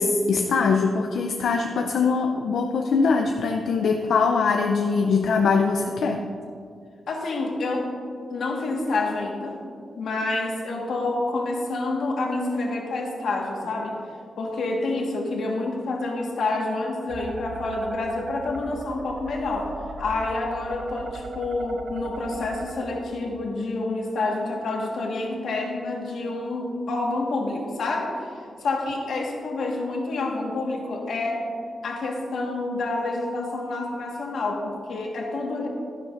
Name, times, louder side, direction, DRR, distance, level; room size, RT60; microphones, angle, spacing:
voice 1, 0.0-6.2, left 4 dB, 90° left, 3 dB, 0.5 m, -22 dB
voice 2, 7.1-7.9 8.3-9.6 10.0-14.0 14.4-19.7 20.0-28.3 28.6-31.5 31.8-35.7, left 2 dB, 70° left, 0 dB, 1.6 m, -28 dB
sound 1, 17.1-22.7, right 3 dB, 45° right, 0.6 m, -39 dB
12.0 x 11.0 x 2.6 m, 2.3 s
wide cardioid pair, 175°, 0 cm